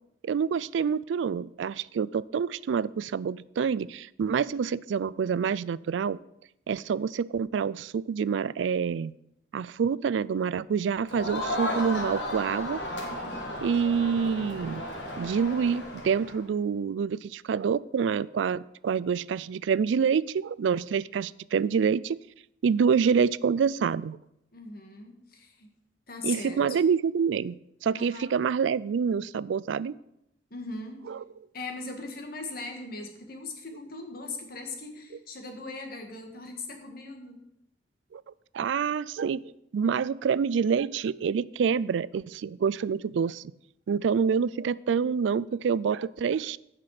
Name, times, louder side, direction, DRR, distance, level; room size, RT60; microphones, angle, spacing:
voice 1, 0.2-6.2 6.7-9.1 9.5-12.8 13.6-14.8 15.2-22.2 22.6-24.2 26.2-29.9 31.1-31.2 38.1-38.2 38.5-39.4 39.7-43.4 43.9-46.6, right 6 dB, 90° right, 20 dB, 0.3 m, -27 dB
Crowd, 11.1-16.4, left 1 dB, 80° left, 2.5 m, -34 dB
voice 2, 24.5-25.7 26.1-26.8 27.9-28.3 30.5-31.0 31.5-37.4, left 3 dB, 55° left, 3 dB, 1.9 m, -39 dB
15.5 x 5.9 x 5.0 m, 0.81 s
head